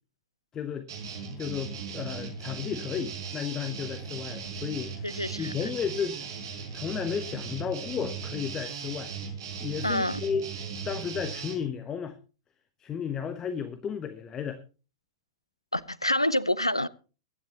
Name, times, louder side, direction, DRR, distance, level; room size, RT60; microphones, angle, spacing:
voice 1, 0.5-0.9 1.4-6.3 6.7-9.1 9.6-10.5 10.8-12.2 12.8-14.6, left 7 dB, 20° left, 1.1 m, -33 dB
sound 1, 0.9-11.6, right 6 dB, 55° right, 4.7 m, -38 dB
voice 2, 5.0-5.5 9.8-10.2 15.7-16.9, left 1 dB, 90° left, 0.6 m, -27 dB
22.5 x 10.5 x 2.9 m
figure-of-eight pair, 100°, 3 cm